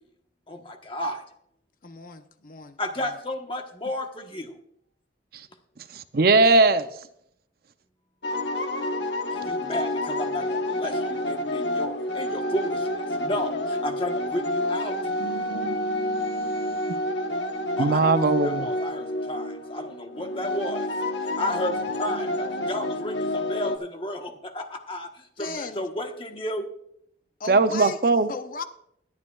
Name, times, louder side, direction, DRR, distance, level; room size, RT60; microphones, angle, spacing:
voice 1, 0.5-1.2 2.8-4.6 9.3-15.0 17.8-20.9 21.2-26.7, left 1 dB, 30° left, 4 dB, 1.2 m, -32 dB
voice 2, 1.8-3.1 25.4-25.9 27.4-28.0 28.3-28.6, left 4 dB, 45° left, 8 dB, 0.7 m, -36 dB
voice 3, 5.9-6.9 15.2-17.0 17.8-18.7 27.5-28.3, right 3 dB, 50° right, 11 dB, 0.5 m, -21 dB
sound 1, 8.2-23.8, left 1 dB, 70° left, 1.1 m, -29 dB
21.0 x 9.9 x 2.3 m, 0.73 s
head